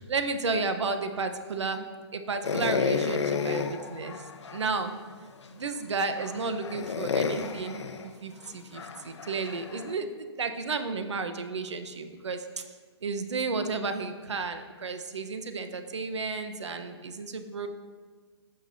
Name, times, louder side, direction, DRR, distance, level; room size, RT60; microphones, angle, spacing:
voice 1, 0.0-1.8 2.1-12.6 13.0-17.7, right 4 dB, 75° right, 8 dB, 1.0 m, -33 dB
sound 1, 2.4-4.8 5.4-5.5 6.1-9.9, left 5 dB, 75° left, 0.8 m, -31 dB
16.5 x 6.2 x 2.7 m, 1.5 s
hypercardioid pair, 175°, 15 cm